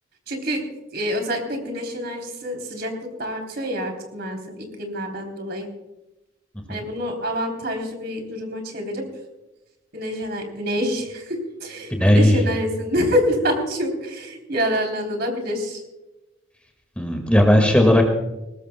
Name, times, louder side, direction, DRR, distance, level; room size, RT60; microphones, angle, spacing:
voice 1, 0.3-0.6 0.9-2.9 3.2-5.7 6.7-9.1 9.9-15.8, equal, 50° right, 3 dB, 3.4 m, -26 dB
voice 2, 11.9-12.4 17.0-18.0, left 1 dB, 5° left, 2 dB, 1.8 m, -16 dB
20.0 x 19.5 x 2.2 m, 1.0 s
head